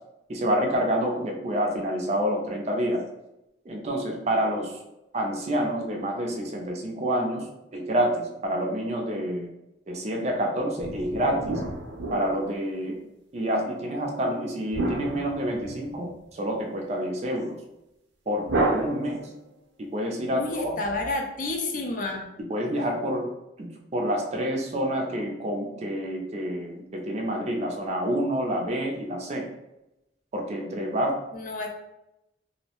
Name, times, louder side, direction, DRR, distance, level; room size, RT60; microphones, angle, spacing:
voice 1, 0.3-3.0 3.7-4.8 5.1-7.5 7.7-9.5 9.9-11.6 12.1-13.0 13.3-17.6 18.3-19.3 19.8-20.8 22.5-23.3 23.6-23.7 23.9-29.5 30.3-31.2, equal, 35° right, 1 dB, 0.4 m, -28 dB
sound 1, 10.8-12.8 14.7-16.1 18.5-19.5, right 2 dB, 90° right, 0.5 m, -30 dB
voice 2, 20.3-22.2 31.3-31.7, left 2 dB, 45° left, 2 dB, 0.4 m, -30 dB
2.6 x 2.0 x 2.9 m, 0.90 s
head